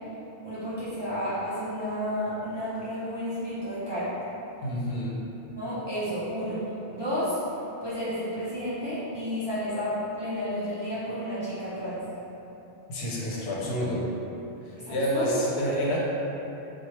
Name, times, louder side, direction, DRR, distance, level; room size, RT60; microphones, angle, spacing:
voice 1, 0.4-4.1 5.6-6.6 6.9-7.4 7.8-12.0 14.8-15.3, equal, 30° right, -13 dB, 0.5 m, -31 dB
voice 2, 4.6-5.2 12.9-14.0 14.9-16.0, equal, 75° left, -4 dB, 0.8 m, -28 dB
3.0 x 2.3 x 2.8 m, 2.9 s
omnidirectional pair, 1.1 m